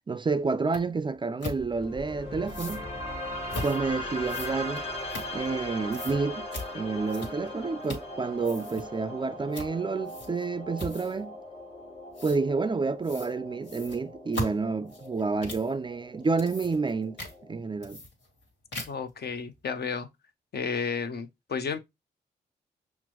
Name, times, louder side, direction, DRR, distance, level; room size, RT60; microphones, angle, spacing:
voice 1, 0.1-2.9 3.6-4.8 5.3-6.4 6.7-11.3 12.2-17.2 17.5-18.0, right 4 dB, 25° right, 0.3 m, -29 dB
sound 1, 0.7-0.8 1.4-1.6 2.5-2.8 3.5-3.8 4.3-5.6 5.9-6.2 6.5-6.7 7.1-7.5 7.8-8.1 8.4-8.9 9.5-9.7 10.1-10.4 10.8-11.2 12.2-12.4 13.0-13.3 13.6-15.7 16.2-16.9 17.2-17.3 17.8-18.4 18.7-19.1, left 1 dB, 75° left, 1.5 m, -38 dB
sound 2, 1.6-17.6, left 1 dB, 30° left, 1.5 m, -39 dB
voice 2, 18.9-20.1 20.5-21.8, left 5 dB, 60° left, 0.7 m, -32 dB
5.9 x 2.1 x 2.9 m
cardioid pair, 55°, 19 cm